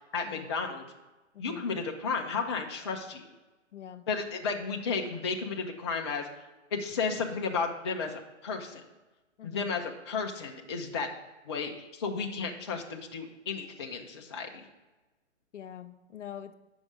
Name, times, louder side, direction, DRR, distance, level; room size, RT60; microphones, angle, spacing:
voice 1, 0.1-0.8 1.4-3.2 4.1-6.3 6.7-8.8 9.4-11.1 11.5-14.6, left 5 dB, 25° left, 2 dB, 0.4 m, -33 dB
voice 2, 1.3-1.7 3.7-4.0 9.4-9.8 11.0-11.1 15.5-16.5, left 10 dB, 65° left, 10 dB, 0.7 m, -44 dB
7.8 x 5.4 x 4.9 m, 1.1 s
figure-of-eight pair, 130°, 38 cm